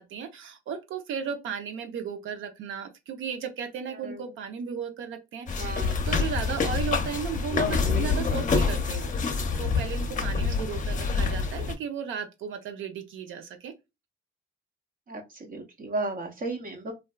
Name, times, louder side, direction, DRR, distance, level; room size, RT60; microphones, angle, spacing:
voice 1, 0.0-5.7 6.1-13.7, right 7 dB, 80° right, 0.8 m, -35 dB
voice 2, 3.9-4.2 5.5-6.0 10.5-10.6 15.1-16.9, right 2 dB, 45° right, 0.8 m, -35 dB
sound 1, 5.5-11.7, left 4 dB, 40° left, 0.7 m, -27 dB
3.2 x 2.6 x 2.3 m
cardioid pair, 90°, 20 cm